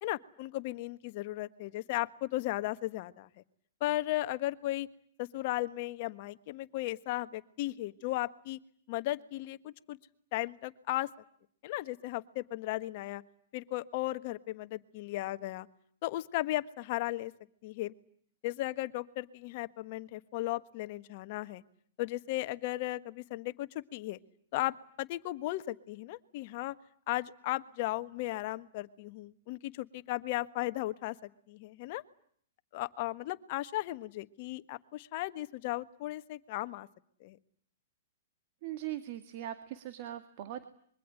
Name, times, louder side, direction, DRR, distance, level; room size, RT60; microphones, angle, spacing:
voice 1, 0.0-3.3 3.8-4.9 5.2-8.6 8.9-10.0 10.3-11.1 11.6-13.2 13.5-15.7 16.0-17.3 17.6-17.9 18.4-21.6 22.0-24.2 24.5-26.7 27.1-32.0 32.7-36.9 37.2-37.4, left 17 dB, 50° left, 12 dB, 1.4 m, -36 dB
voice 2, 38.6-40.6, right 13 dB, 50° right, 9 dB, 2.1 m, -40 dB
25.5 x 23.5 x 9.8 m, 0.62 s
hypercardioid pair, 125°, 0 cm